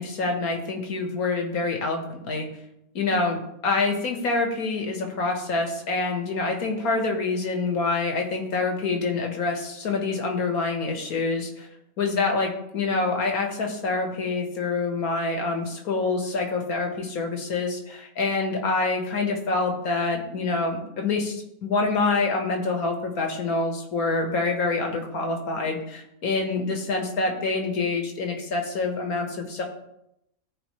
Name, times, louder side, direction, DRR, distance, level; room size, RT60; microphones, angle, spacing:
voice 1, 0.0-2.5 3.0-11.7 12.0-29.6, left 3 dB, 70° left, 3 dB, 1.8 m, -26 dB
14.0 x 4.9 x 3.2 m, 0.80 s
omnidirectional pair, 1.6 m